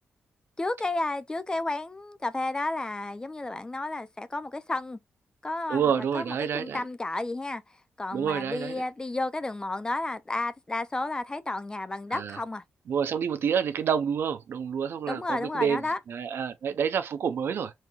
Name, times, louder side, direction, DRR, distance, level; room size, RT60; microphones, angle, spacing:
voice 1, 0.6-5.0 5.4-7.6 8.0-12.6 15.1-16.0, left 2 dB, 20° left, 0.4 m, -32 dB
voice 2, 5.7-6.8 8.1-8.8 12.1-12.4 12.9-17.7, right 7 dB, 65° right, 0.6 m, -28 dB
4.2 x 2.8 x 2.4 m
cardioid pair, 100°, 4 cm